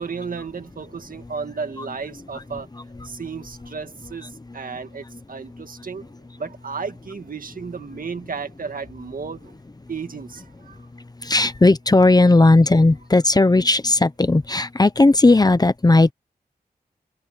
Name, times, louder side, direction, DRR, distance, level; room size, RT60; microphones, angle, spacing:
voice 1, 0.0-2.7 3.0-6.0 6.4-9.5 9.9-10.8, right 5 dB, 60° right, 1.9 m, -33 dB
voice 2, 4.2-4.8 5.0-5.2 5.5-5.6 10.9-16.1, left 2 dB, 25° left, 0.9 m, -17 dB
open air
wide cardioid pair, 100°, 16 cm